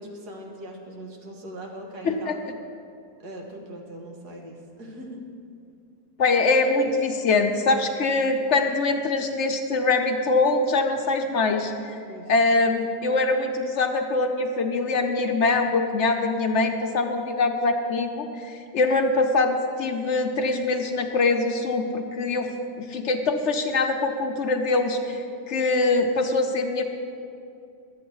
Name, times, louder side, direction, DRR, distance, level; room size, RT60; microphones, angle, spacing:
voice 1, 0.0-2.5 3.2-5.2 12.1-12.3, right 1 dB, 85° right, 0 dB, 2.1 m, -40 dB
voice 2, 2.0-2.4 6.2-11.9 12.3-22.5 22.8-26.8, left 3 dB, 55° left, 4 dB, 0.9 m, -23 dB
12.5 x 8.4 x 6.2 m, 2.5 s
omnidirectional pair, 1.7 m